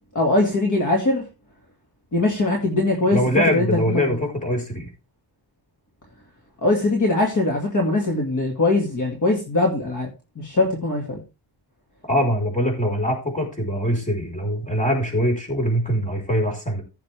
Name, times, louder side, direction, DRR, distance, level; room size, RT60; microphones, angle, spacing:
voice 1, 0.1-1.3 2.1-3.2 3.5-4.0 6.6-11.2, left 2 dB, 40° left, 1 dB, 2.2 m, -21 dB
voice 2, 3.1-4.9 12.1-16.8, equal, 15° left, 1 dB, 4.6 m, -23 dB
15.0 x 6.7 x 3.4 m, 0.29 s
wide cardioid pair, 165°, 45 cm